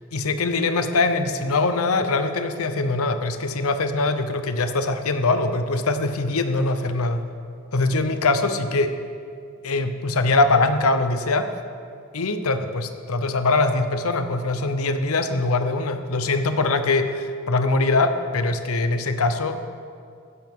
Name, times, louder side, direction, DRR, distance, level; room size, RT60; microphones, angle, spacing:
voice 1, 0.1-7.2 7.7-9.0 9.6-11.5 12.1-19.6, left 3 dB, 70° left, 9 dB, 0.8 m, -22 dB
15.5 x 12.5 x 3.7 m, 2.3 s
head